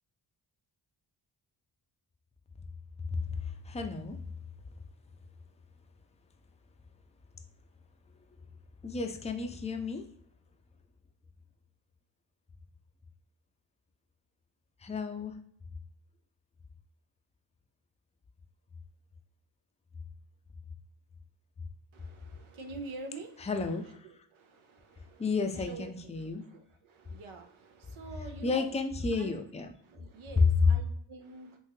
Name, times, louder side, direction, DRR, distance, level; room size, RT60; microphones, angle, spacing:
voice 1, 3.1-4.2 8.2-8.4 8.8-10.0 14.8-15.4 23.4-24.1 25.2-26.4 28.4-29.7, left 4 dB, 15° left, 5 dB, 0.4 m, -33 dB
voice 2, 21.9-23.5 23.8-28.7 29.2-29.3 29.8-31.6, right 3 dB, 75° right, 5 dB, 0.7 m, -47 dB
3.6 x 2.7 x 2.7 m, 0.64 s
cardioid pair, 65°, 49 cm